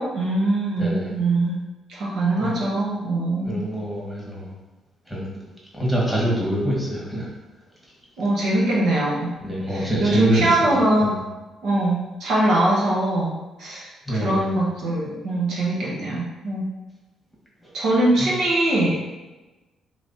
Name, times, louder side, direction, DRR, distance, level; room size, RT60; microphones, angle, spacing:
voice 1, 0.0-1.6 1.9-3.6 8.2-9.3 9.7-11.2 11.6-13.3 13.6-16.7 17.7-19.0, right 1 dB, 75° right, -5 dB, 1.2 m, -22 dB
voice 2, 0.8-1.1 2.4-2.6 3.4-4.5 5.1-5.2 5.7-7.3 9.4-11.2 14.1-14.4 17.6-17.7, right 1 dB, ahead, -6 dB, 1.5 m, -25 dB
3.2 x 3.0 x 4.1 m, 1.1 s
cardioid pair, 90°, 0 cm